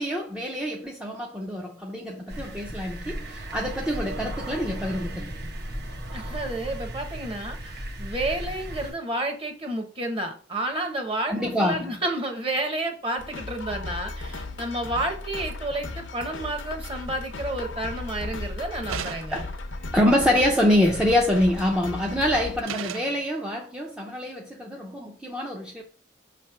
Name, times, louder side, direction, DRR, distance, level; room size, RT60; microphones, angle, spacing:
voice 1, 0.0-5.4 11.3-12.0 19.3-19.5 19.9-25.8, left 1 dB, 5° right, 0.6 m, -25 dB
sound 1, 2.3-8.9, right 1 dB, 55° right, 1.0 m, -36 dB
voice 2, 6.1-19.4, right 1 dB, 30° right, 1.2 m, -30 dB
sound 2, 13.2-22.6, left 3 dB, 75° left, 0.7 m, -36 dB
sound 3, 18.9-19.5 21.6-21.9 22.6-23.2, right 8 dB, 85° right, 0.4 m, -35 dB
5.7 x 3.3 x 5.7 m
head